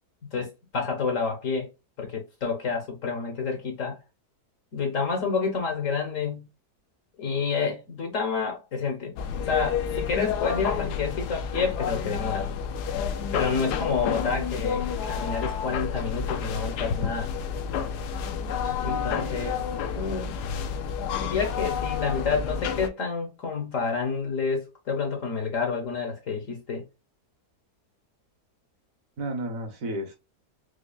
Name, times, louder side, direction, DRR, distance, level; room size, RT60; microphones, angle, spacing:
voice 1, 0.2-1.7 2.0-4.0 4.7-6.5 7.2-9.1 9.5-12.5 13.3-17.3 18.8-19.6 19.9-20.4 21.0-26.8, left 5 dB, 60° left, 1.1 m, -29 dB
sound 1, 9.2-22.9, left 7 dB, 80° left, 1.2 m, -30 dB
voice 2, 18.6-19.5 29.2-30.2, right 1 dB, 60° right, 1.2 m, -34 dB
4.8 x 2.4 x 2.3 m
omnidirectional pair, 1.7 m